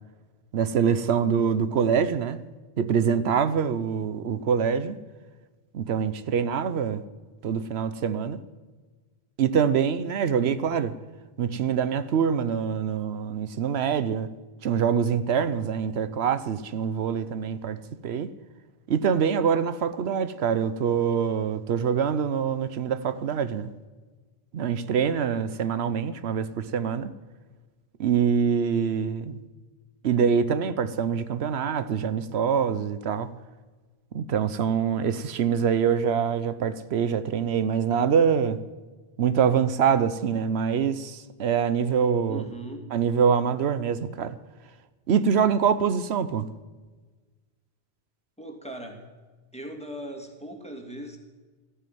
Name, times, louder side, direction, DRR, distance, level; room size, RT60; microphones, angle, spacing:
voice 1, 0.5-2.4 2.8-5.0 5.7-7.0 7.4-8.4 9.4-11.0 11.4-14.3 14.6-17.8 18.0-18.3 18.9-23.7 24.5-27.1 28.0-29.4 30.0-33.3 34.1-38.6 39.2-42.4 42.9-44.3 45.1-46.5, right 7 dB, 85° right, 1.0 m, -25 dB
voice 2, 42.3-42.9 48.4-49.1 49.5-51.2, right 1 dB, 5° left, 2.6 m, -39 dB
14.0 x 9.7 x 9.3 m
omnidirectional pair, 1.0 m